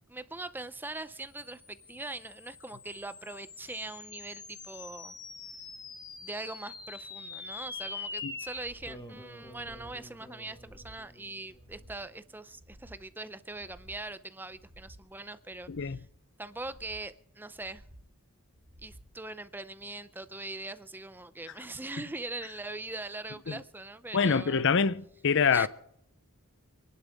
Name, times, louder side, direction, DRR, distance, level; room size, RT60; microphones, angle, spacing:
voice 1, 0.1-5.2 6.2-16.1 16.4-17.8 18.8-24.7 25.5-25.7, right 2 dB, 10° right, 0.5 m, -41 dB
sound 1, 1.4-12.0, left 4 dB, 20° left, 1.1 m, -45 dB
sound 2, 8.5-9.0 9.4-10.0 10.4-11.0 11.4-12.0 12.5-13.0 13.5-14.1 14.5-15.1 15.5-16.1 16.5-17.1 17.5-18.1 18.5-19.1 19.5-19.6, equal, 65° right, 2.5 m, -54 dB
voice 2, 15.7-16.0 23.5-23.6 24.1-25.7, left 6 dB, 55° left, 0.6 m, -25 dB
27.5 x 11.0 x 3.5 m
head